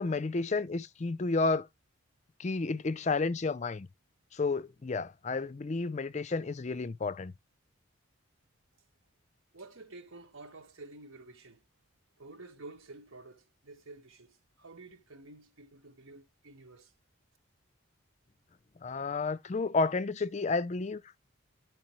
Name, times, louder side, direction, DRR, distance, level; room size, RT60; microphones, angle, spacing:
voice 1, 0.0-1.7 2.4-3.9 4.3-7.3 18.8-21.0, left 3 dB, 35° left, 0.4 m, -31 dB
voice 2, 9.5-11.6 12.2-16.9, right 2 dB, 70° right, 1.2 m, -50 dB
12.5 x 4.7 x 2.9 m
head